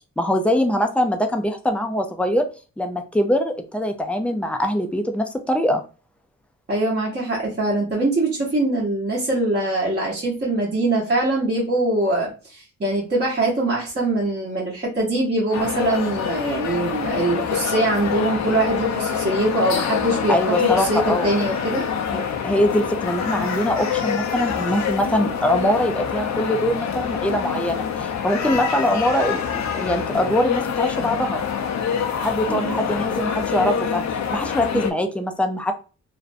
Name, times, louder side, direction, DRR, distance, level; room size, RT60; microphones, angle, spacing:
voice 1, 0.2-2.4 2.8-5.8 20.3-21.3 22.1-31.4 32.2-34.0 34.3-35.7, left 1 dB, 5° left, 5 dB, 0.4 m, -23 dB
voice 2, 6.7-21.9 32.4-32.8, right 2 dB, 35° right, -6 dB, 0.9 m, -23 dB
sound 1, 15.5-34.9, left 7 dB, 65° left, 0.5 m, -26 dB
2.5 x 2.1 x 2.5 m, 0.34 s
cardioid pair, 90°, 30 cm